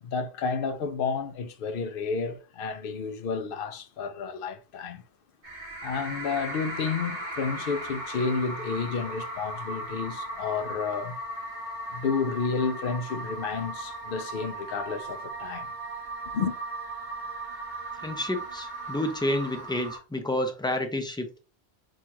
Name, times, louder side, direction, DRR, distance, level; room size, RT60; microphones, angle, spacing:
voice 1, 0.0-5.0 5.8-11.2 11.9-15.7 16.3-16.6, left 5 dB, 60° left, 0.7 m, -31 dB
sound 1, 5.4-20.0, right 2 dB, 45° right, 1.2 m, -37 dB
voice 2, 18.0-21.3, left 1 dB, 5° left, 0.5 m, -29 dB
6.2 x 2.4 x 2.9 m
omnidirectional pair, 1.1 m